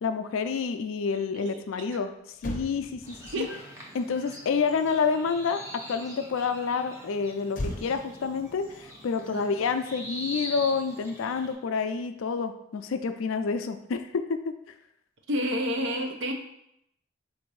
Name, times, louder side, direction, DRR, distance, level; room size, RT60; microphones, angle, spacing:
voice 1, 0.0-2.1 2.4-3.5 3.9-14.2, left 5 dB, 85° left, 9 dB, 0.4 m, -28 dB
Motor vehicle (road), 1.9-2.0 2.3-5.9 7.5-10.1 10.4-10.6, left 1 dB, 40° left, 0.6 m, -41 dB
sound 1, 3.0-11.5, equal, 15° right, 0.6 m, -43 dB
voice 2, 15.3-16.3, equal, 65° right, 4 dB, 0.6 m, -30 dB
4.0 x 2.6 x 4.6 m, 0.78 s
head